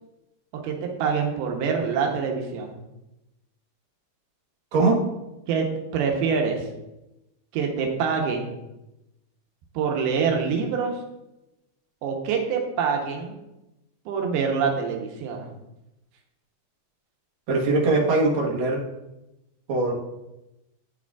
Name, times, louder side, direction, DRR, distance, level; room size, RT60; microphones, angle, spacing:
voice 1, 0.5-2.8 5.5-5.7 5.9-6.7 7.5-8.6 9.7-11.0 12.0-13.4 14.1-15.5, right 6 dB, 85° right, 2 dB, 2.7 m, -25 dB
voice 2, 4.7-5.0 17.5-18.8 19.7-20.0, right 3 dB, 60° right, -3 dB, 2.2 m, -21 dB
10.5 x 4.9 x 2.3 m, 0.94 s
omnidirectional pair, 4.4 m